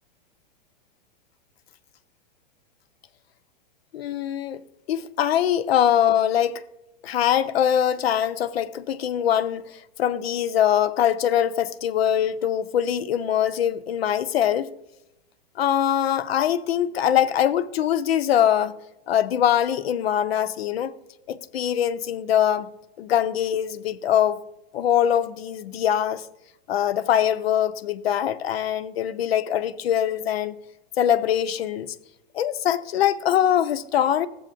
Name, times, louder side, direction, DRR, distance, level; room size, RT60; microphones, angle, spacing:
voice 1, 3.9-4.6 4.9-6.6 7.0-14.7 15.6-18.8 19.1-20.9 21.3-22.7 23.0-24.4 24.7-26.2 26.7-30.5 31.0-31.9 32.3-34.3, left 10 dB, 90° left, 0.7 m, -23 dB
14.5 x 8.3 x 2.5 m
supercardioid pair, 175°, 29 cm